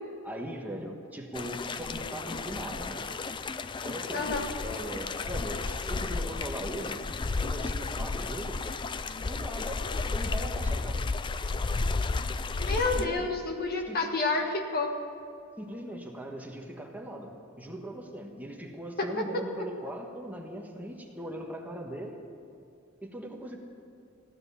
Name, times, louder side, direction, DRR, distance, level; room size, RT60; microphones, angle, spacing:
voice 1, 0.2-3.0 3.8-4.3 4.6-7.0 7.4-8.6 9.2-9.8 10.1-11.0 12.9-13.3 13.9-14.1 15.6-22.2 23.0-23.6, equal, 10° right, 1 dB, 1.4 m, -40 dB
sound 1, 1.3-13.1, left 3 dB, 25° left, 0.3 m, -33 dB
voice 2, 4.1-4.5 12.6-14.9 19.0-19.1, left 3 dB, 45° left, 3 dB, 1.5 m, -29 dB
15.5 x 11.0 x 7.0 m, 2.5 s
head